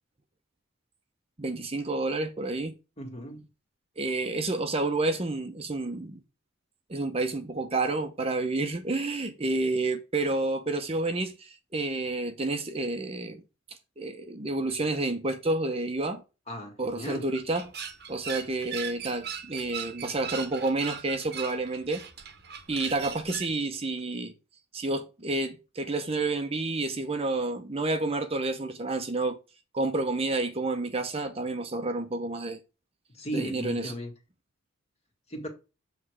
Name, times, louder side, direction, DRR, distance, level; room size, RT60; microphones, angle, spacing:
voice 1, 1.4-2.7 4.0-6.2 6.9-13.4 14.0-16.2 16.8-17.7 18.1-22.0 22.7-24.3 24.7-29.4 29.7-32.6 33.3-33.9, right 2 dB, 30° right, 0.7 m, -29 dB
voice 2, 3.0-3.5 16.5-17.3 33.1-34.1 35.3-35.5, equal, 30° left, 1.8 m, -36 dB
sound 1, 16.9-23.5, right 7 dB, 50° right, 1.0 m, -39 dB
7.8 x 3.3 x 6.1 m
head